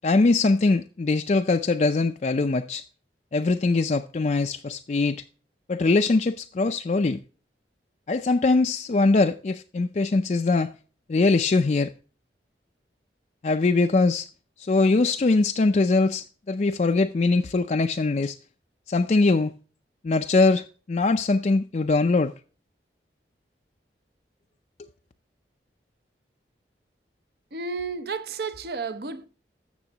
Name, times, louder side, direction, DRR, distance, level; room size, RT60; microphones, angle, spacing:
voice 1, 0.0-2.8 3.3-5.2 5.7-7.2 8.1-10.7 11.1-11.9 13.4-14.3 14.6-18.4 18.9-19.5 20.0-22.3, left 3 dB, 40° left, 0.4 m, -22 dB
voice 2, 27.5-29.3, right 4 dB, 60° right, 0.8 m, -32 dB
13.5 x 6.9 x 2.8 m
head